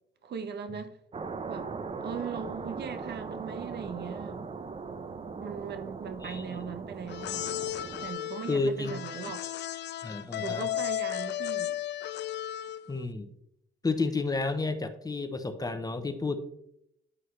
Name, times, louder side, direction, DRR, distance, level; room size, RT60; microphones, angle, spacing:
voice 1, 0.2-1.0 1.5-1.7 2.0-4.5 5.4-9.4 10.4-11.8, right 6 dB, 60° right, 0.9 m, -39 dB
sound 1, 1.1-8.1, right 4 dB, 30° right, 0.7 m, -39 dB
voice 2, 6.2-6.6 8.5-9.0 10.0-10.7 12.9-13.3 13.8-16.4, left 3 dB, 20° left, 0.9 m, -31 dB
sound 2, 7.1-13.0, left 12 dB, 60° left, 0.4 m, -34 dB
9.8 x 5.5 x 3.2 m
cardioid pair, 90°, 20 cm